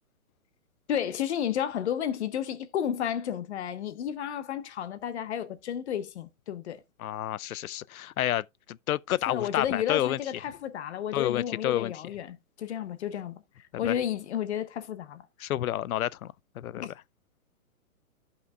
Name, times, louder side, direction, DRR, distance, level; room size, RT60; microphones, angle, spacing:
voice 1, 0.9-6.8 9.3-15.2 16.7-16.9, left 9 dB, 50° left, 1.1 m, -32 dB
voice 2, 7.0-10.2 11.1-11.9 13.8-13.9 15.4-16.8, left 12 dB, 80° left, 0.5 m, -30 dB
14.0 x 5.7 x 2.3 m
hypercardioid pair, 145°, 42 cm